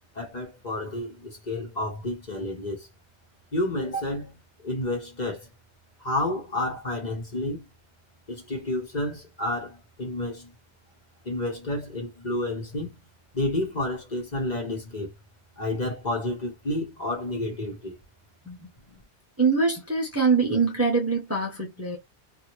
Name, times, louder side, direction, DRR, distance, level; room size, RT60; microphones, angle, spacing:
voice 1, 0.1-2.9 3.5-4.3 4.6-5.5 6.0-7.7 8.3-10.5 11.2-13.0 13.3-15.1 15.6-18.0 18.9-19.0, left 1 dB, 40° left, 1.0 m, -30 dB
voice 2, 19.4-22.0, right 4 dB, 15° right, 0.8 m, -23 dB
2.7 x 2.5 x 3.0 m
omnidirectional pair, 1.2 m